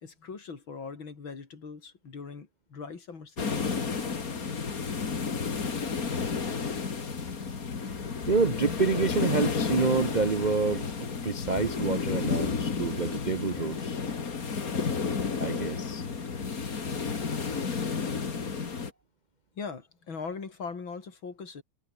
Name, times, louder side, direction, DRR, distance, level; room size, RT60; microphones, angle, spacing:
voice 1, 0.0-3.7 19.6-21.6, left 5 dB, 90° left, 4.0 m, -40 dB
sound 1, 3.4-18.9, left 5 dB, 50° left, 2.5 m, -31 dB
voice 2, 8.3-10.9 11.2-14.0 15.4-16.0, right 4 dB, 45° right, 0.5 m, -27 dB
omnidirectional pair, 2.1 m